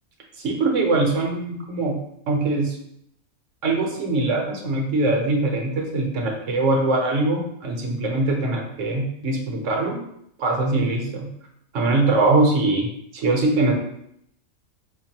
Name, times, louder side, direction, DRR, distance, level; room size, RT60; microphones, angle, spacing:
voice 1, 0.4-2.0 2.3-2.8 3.6-10.0 10.4-11.3 11.7-12.9 13.1-13.7, right 2 dB, 65° right, 1 dB, 1.0 m, -22 dB
5.1 x 2.2 x 2.8 m, 0.73 s
omnidirectional pair, 1.5 m